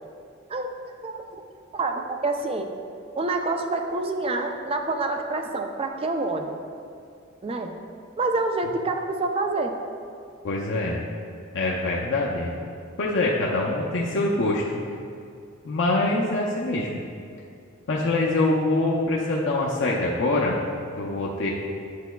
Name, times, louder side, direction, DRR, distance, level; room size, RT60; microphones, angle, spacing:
voice 1, 0.5-1.4 1.7-2.7 3.1-6.6 7.4-7.7 8.2-9.7, right 2 dB, 30° right, 5 dB, 0.4 m, -27 dB
voice 2, 10.4-11.0 11.5-12.5 13.0-14.8 15.6-17.0 17.9-20.6 21.0-21.5, left 2 dB, 60° left, -4 dB, 0.6 m, -24 dB
8.3 x 6.8 x 2.3 m, 2.4 s
head